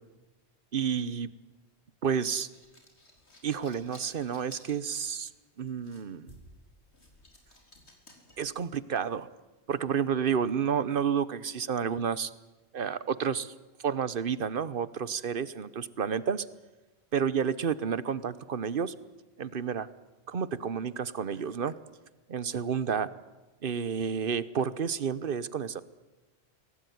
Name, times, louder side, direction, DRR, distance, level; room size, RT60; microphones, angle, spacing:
voice 1, 0.7-1.3 2.0-2.5 3.4-5.3 5.6-6.3 8.4-9.3 9.7-12.3 12.7-13.5 13.8-16.4 17.1-18.9 19.4-19.9 20.3-21.7 22.3-23.1 23.6-25.8, right 7 dB, 55° right, 16 dB, 1.1 m, -30 dB
sound 1, 2.2-9.2, left 1 dB, 90° left, 4.3 m, -56 dB
23.5 x 17.5 x 9.4 m, 1.1 s
omnidirectional pair, 1.1 m